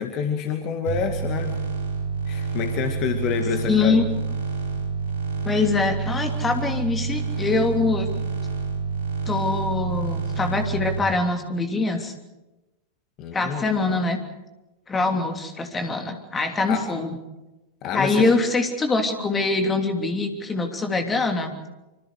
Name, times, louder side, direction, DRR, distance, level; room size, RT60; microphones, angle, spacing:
voice 1, 0.0-1.5 2.3-4.1 13.2-13.7 16.7-16.9 17.8-18.4, left 7 dB, 40° left, 6 dB, 2.2 m, -27 dB
sound 1, 0.9-11.0, right 4 dB, 70° right, 4.2 m, -28 dB
voice 2, 3.7-4.0 5.4-8.1 9.3-12.1 13.3-14.2 14.9-17.2 17.9-21.5, left 3 dB, 15° left, 5 dB, 3.2 m, -23 dB
26.5 x 26.0 x 5.0 m, 1.0 s
figure-of-eight pair, 90°, 0 cm